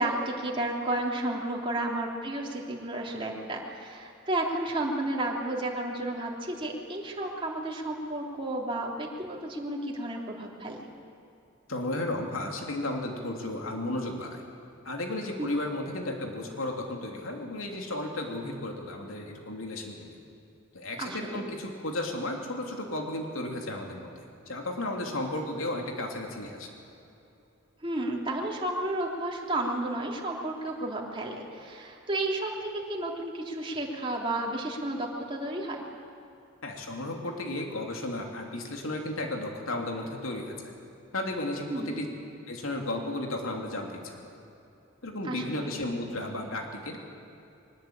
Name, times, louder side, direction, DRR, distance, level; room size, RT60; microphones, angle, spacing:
voice 1, 0.0-10.8 15.4-15.5 21.0-21.4 27.8-35.8 41.7-42.0 45.2-45.7, right 1 dB, 25° right, -2 dB, 3.2 m, -32 dB
voice 2, 11.7-14.4 14.8-20.2 20.7-24.1 24.5-26.7 36.6-40.7 41.1-42.1 42.5-44.2 45.0-47.0, left 1 dB, 80° left, 2 dB, 3.1 m, -34 dB
23.0 x 19.5 x 8.9 m, 2.9 s
head